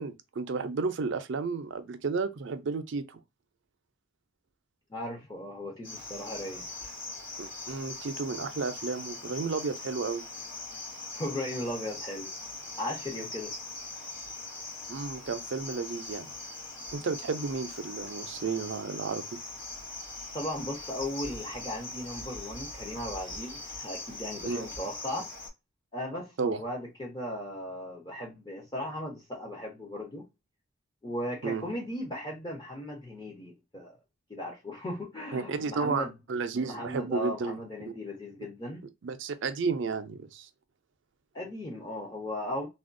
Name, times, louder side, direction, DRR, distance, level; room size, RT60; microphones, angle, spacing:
voice 1, 0.0-3.2 7.4-10.2 14.9-16.3 16.9-19.2 24.4-24.7 26.4-26.6 31.4-31.7 35.3-37.6 39.0-40.5, right 4 dB, 55° right, 0.4 m, -32 dB
voice 2, 4.9-6.7 11.1-12.3 12.8-13.5 20.3-25.3 25.9-30.3 31.0-33.9 34.3-36.1 36.7-38.8 41.3-42.7, left 1 dB, 20° left, 0.6 m, -37 dB
Cricket, 5.8-25.5, left 3 dB, 60° left, 2.0 m, -41 dB
3.4 x 2.3 x 2.5 m
head